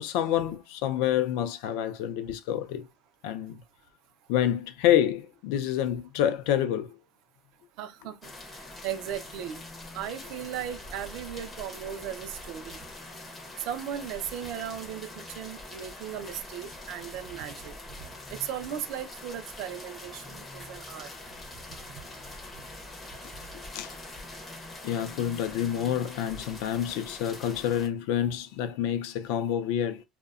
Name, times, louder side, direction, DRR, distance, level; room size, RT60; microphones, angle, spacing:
voice 1, 0.0-2.9 3.2-3.6 4.3-7.0 23.7-23.9 24.8-30.0, left 10 dB, 80° left, 0.4 m, -28 dB
voice 2, 7.8-9.6 9.9-12.8 13.7-17.7 18.3-21.1, right 10 dB, 60° right, 0.4 m, -37 dB
sound 1, 8.2-27.9, left 2 dB, 20° left, 0.5 m, -44 dB
2.7 x 2.1 x 2.3 m
cardioid pair, 170°, 0 cm